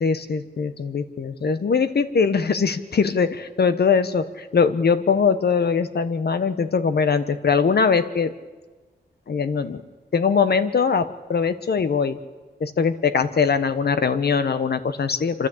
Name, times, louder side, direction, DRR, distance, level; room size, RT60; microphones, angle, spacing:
voice 1, 0.0-8.3 9.3-9.8 10.1-12.2 12.6-15.5, left 5 dB, 60° left, 11 dB, 1.1 m, -21 dB
26.0 x 12.5 x 8.5 m, 1.3 s
wide cardioid pair, 155°, 19 cm